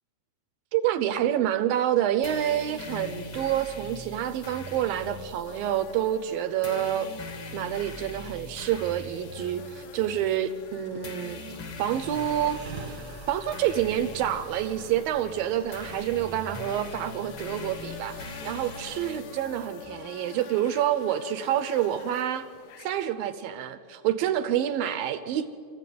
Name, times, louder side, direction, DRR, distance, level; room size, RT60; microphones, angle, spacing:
voice 1, 0.7-7.1 7.5-11.4 11.8-12.6 12.9-13.0 13.3-22.5 22.8-25.5, right 11 dB, 75° right, 11 dB, 2.2 m, -28 dB
sound 1, 2.2-19.8, left 2 dB, 45° left, 1.9 m, -42 dB
sound 2, 5.5-23.1, left 11 dB, 75° left, 2.7 m, -48 dB
sound 3, 11.9-19.2, right 5 dB, 55° right, 1.4 m, -47 dB
27.5 x 14.5 x 9.3 m, 2.3 s
omnidirectional pair, 4.8 m